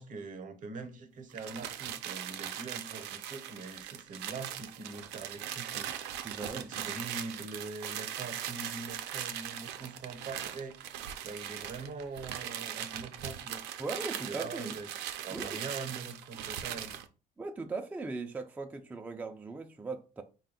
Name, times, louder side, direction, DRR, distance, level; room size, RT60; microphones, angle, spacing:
voice 1, 0.0-10.8 11.2-13.6 14.3-14.9 15.2-17.0, right 4 dB, 50° right, 0.7 m, -43 dB
sound 1, 1.3-17.1, right 10 dB, 90° right, 0.5 m, -40 dB
voice 2, 6.2-6.7 13.8-14.8 15.3-15.6 17.4-20.2, right 3 dB, 10° right, 0.3 m, -39 dB
4.1 x 2.2 x 3.6 m
cardioid pair, 110°, 17 cm